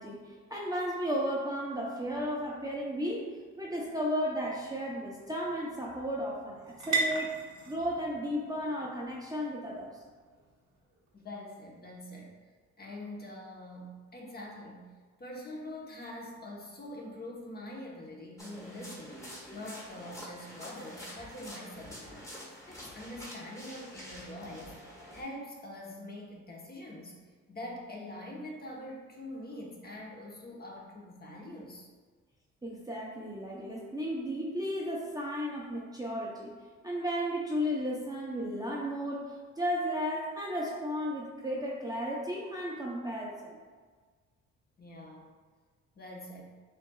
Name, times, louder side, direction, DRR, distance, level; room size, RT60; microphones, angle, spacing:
voice 1, 0.0-7.3 7.7-10.0 32.6-36.5 36.8-43.6, equal, 10° right, -4 dB, 0.7 m, -34 dB
sound 1, 3.3-11.2, right 3 dB, 65° right, 1.0 m, -40 dB
voice 2, 11.1-12.3 12.8-14.9 15.2-19.2 19.5-24.8 25.1-27.1 27.5-31.9 44.8-45.3 45.9-46.4, left 1 dB, 30° left, -2 dB, 1.0 m, -44 dB
sound 2, 18.4-25.2, equal, 10° left, 1.3 m, -47 dB
6.9 x 2.6 x 2.3 m, 1.5 s
cardioid pair, 90°, 30 cm